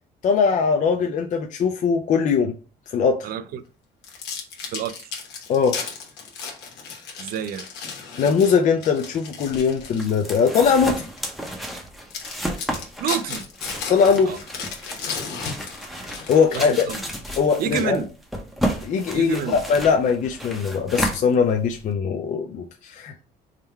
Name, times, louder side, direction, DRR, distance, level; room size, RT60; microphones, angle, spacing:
voice 1, 0.2-2.5 2.9-3.2 5.5-5.8 8.2-11.1 13.9-14.3 16.3-16.9 17.4-18.0 18.8-23.2, left 6 dB, 45° left, 0.4 m, -20 dB
voice 2, 3.2-3.6 4.7-5.1 7.2-7.7 13.0-13.5 14.3-14.4 15.9-16.0 16.5-17.0 17.6-18.1 19.1-19.6, right 8 dB, 65° right, 0.4 m, -28 dB
sound 1, 4.0-10.5 11.0-11.2 11.7-11.8 12.1-17.6, left 5 dB, 85° left, 1.1 m, -35 dB
sound 2, 9.4-21.9, equal, ahead, 0.7 m, -32 dB
3.6 x 2.2 x 4.3 m
cardioid pair, 110°, 17 cm